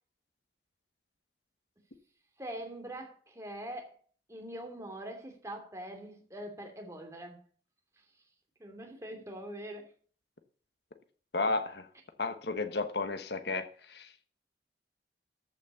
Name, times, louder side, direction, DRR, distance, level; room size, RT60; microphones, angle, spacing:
voice 1, 2.4-3.9 4.3-7.4 8.6-9.9, right 1 dB, 15° right, 2.7 m, -43 dB
voice 2, 11.3-11.9 12.2-13.6 13.9-14.1, left 3 dB, 65° left, 1.2 m, -32 dB
14.0 x 6.0 x 7.1 m
head